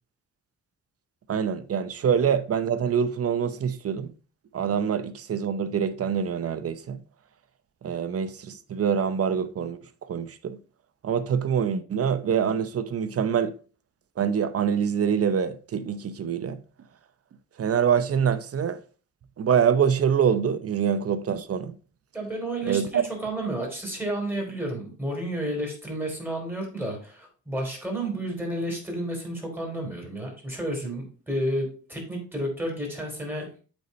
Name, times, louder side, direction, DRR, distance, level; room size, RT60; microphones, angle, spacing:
voice 1, 1.3-4.1 4.5-7.0 7.8-10.6 11.0-13.6 14.2-16.6 17.6-18.8 19.4-21.8 22.7-23.0, right 7 dB, 50° right, 0.7 m, -25 dB
voice 2, 22.1-33.6, right 1 dB, 5° right, 3.3 m, -31 dB
8.2 x 4.1 x 4.2 m
cardioid pair, 115°, 30 cm